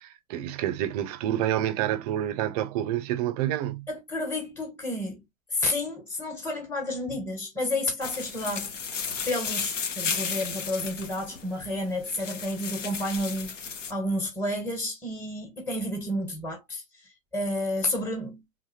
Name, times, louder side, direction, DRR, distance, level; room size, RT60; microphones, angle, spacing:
voice 1, 0.0-3.9, right 12 dB, 30° right, 0.6 m, -28 dB
voice 2, 3.9-5.2 5.5-8.7 9.3-13.5 13.9-16.8 17.3-18.4, left 1 dB, 5° left, 1.5 m, -30 dB
sound 1, 8.0-13.9, left 6 dB, 70° left, 1.5 m, -34 dB
4.7 x 3.6 x 2.9 m
figure-of-eight pair, 115°, 38 cm